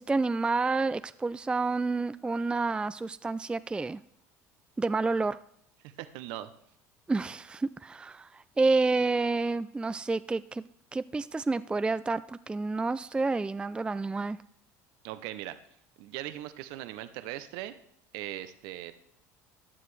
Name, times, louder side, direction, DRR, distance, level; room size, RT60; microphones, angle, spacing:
voice 1, 0.0-4.0 4.8-5.4 7.1-10.6 10.9-14.4, right 3 dB, 10° right, 15 dB, 0.3 m, -29 dB
voice 2, 5.8-6.5 15.0-15.6 16.0-17.7 18.1-18.9, right 14 dB, 70° right, 12 dB, 0.6 m, -39 dB
14.5 x 9.5 x 3.2 m, 0.72 s
hypercardioid pair, 80°, 8 cm